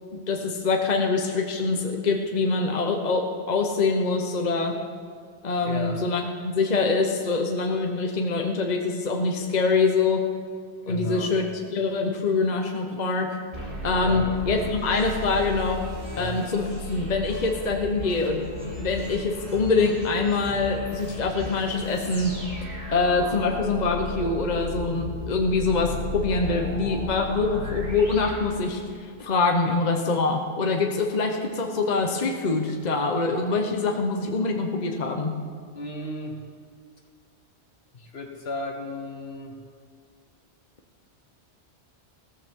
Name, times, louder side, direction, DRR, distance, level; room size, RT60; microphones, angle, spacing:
voice 1, 0.1-4.8 5.4-10.2 10.9-11.4 11.7-13.4 13.8-15.8 16.2-22.3 22.9-35.4, left 3 dB, 40° left, 3 dB, 1.0 m, -24 dB
voice 2, 5.6-6.1 10.9-11.4 14.0-14.3 16.1-16.4 35.7-36.4 37.9-39.6, left 2 dB, 65° left, 3 dB, 1.7 m, -34 dB
sound 1, 13.5-29.1, left 1 dB, 40° right, 3.7 m, -35 dB
15.5 x 14.5 x 3.7 m, 2.1 s
omnidirectional pair, 1.1 m